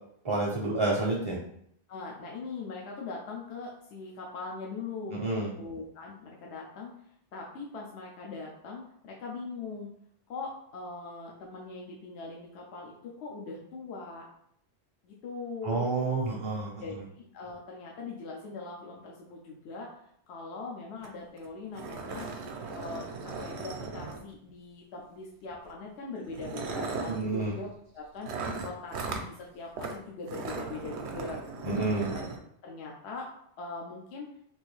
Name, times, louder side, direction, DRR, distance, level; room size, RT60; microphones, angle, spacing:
voice 1, 0.2-1.4 5.1-5.5 15.6-16.8 27.1-27.5 31.6-32.1, right 2 dB, 40° right, -2 dB, 0.5 m, -29 dB
voice 2, 1.9-6.9 7.3-9.9 10.3-14.3 15.0-15.9 16.8-20.0 20.3-22.3 22.7-31.4 31.7-32.2 32.6-33.3 33.6-34.3, left 3 dB, 80° left, -1 dB, 0.9 m, -41 dB
sound 1, 21.0-21.1 21.4-21.5 21.8-24.5 25.5-25.7 26.3-27.2 28.2-29.3 29.8-30.0 30.2-32.4, right 4 dB, 80° right, 0.8 m, -37 dB
3.6 x 2.5 x 3.1 m, 0.69 s
omnidirectional pair, 1.1 m